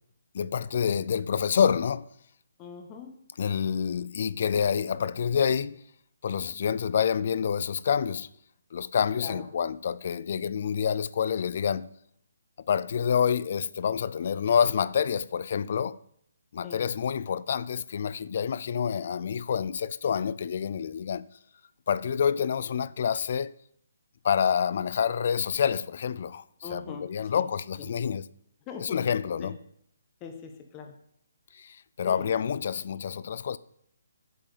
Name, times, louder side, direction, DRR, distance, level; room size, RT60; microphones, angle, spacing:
voice 1, 0.3-2.1 3.4-5.8 6.2-8.3 8.7-11.9 12.7-16.0 16.5-21.2 21.9-23.5 24.2-26.4 26.7-28.2 28.8-29.6 31.5-33.6, left 7 dB, 50° left, 0.4 m, -27 dB
voice 2, 2.6-3.1 9.2-9.5 16.6-16.8 26.6-27.1 27.3-27.4 27.8-27.9 28.7-29.0 29.4-29.5 30.2-30.9 32.0-32.3, left 5 dB, 20° left, 1.1 m, -41 dB
7.7 x 7.5 x 5.0 m
hypercardioid pair, 160°, 0 cm